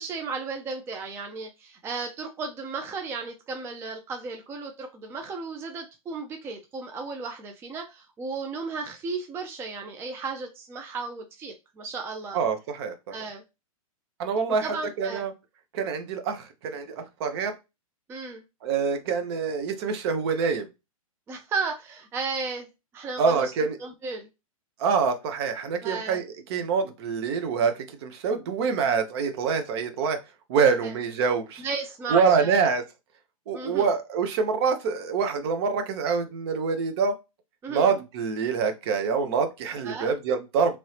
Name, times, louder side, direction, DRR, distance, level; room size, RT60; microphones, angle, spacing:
voice 1, 0.0-12.4 13.1-13.4 14.6-15.2 18.1-18.4 21.3-22.7 22.9-23.4 23.8-24.3 25.8-26.2 30.8-30.9 31.6-32.7 33.5-33.9 37.6-37.9 39.8-40.1, right 4 dB, 15° right, 4 dB, 0.4 m, -34 dB
voice 2, 12.3-13.1 14.2-15.3 15.7-17.5 18.6-20.7 23.2-23.8 24.8-26.2 26.5-30.2 30.5-31.6 32.1-32.8 33.5-37.2 37.7-40.8, right 5 dB, 45° right, 8 dB, 0.7 m, -25 dB
3.0 x 2.7 x 3.1 m, 0.25 s
figure-of-eight pair, 115°, 19 cm